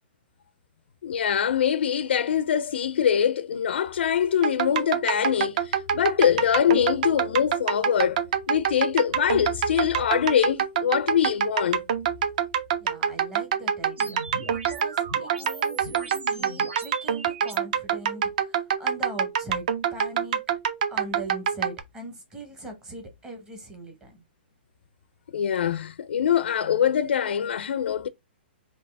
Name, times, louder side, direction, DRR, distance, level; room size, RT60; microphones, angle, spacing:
voice 1, 1.0-11.8 25.3-28.1, left 9 dB, 80° left, 0.4 m, -24 dB
sound 1, 4.4-21.8, right 8 dB, 45° right, 0.6 m, -26 dB
voice 2, 12.8-20.4 20.9-24.2, right 2 dB, 10° right, 0.8 m, -41 dB
sound 2, 14.0-17.6, right 3 dB, 80° right, 1.4 m, -39 dB
4.0 x 2.7 x 3.3 m
hypercardioid pair, 165°, 6 cm